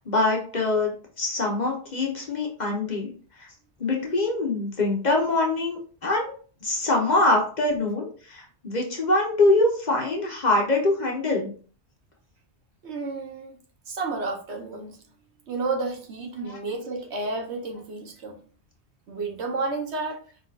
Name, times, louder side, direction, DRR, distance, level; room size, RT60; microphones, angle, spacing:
voice 1, 0.0-3.1 3.4-3.5 3.8-6.3 6.6-11.5 16.5-16.6, left 2 dB, 40° left, 0 dB, 1.0 m, -24 dB
voice 2, 12.8-13.6 13.9-15.0 15.5-18.4 19.1-20.2, right 3 dB, 70° right, 2 dB, 1.2 m, -31 dB
4.8 x 3.7 x 2.4 m, 0.42 s
omnidirectional pair, 1.2 m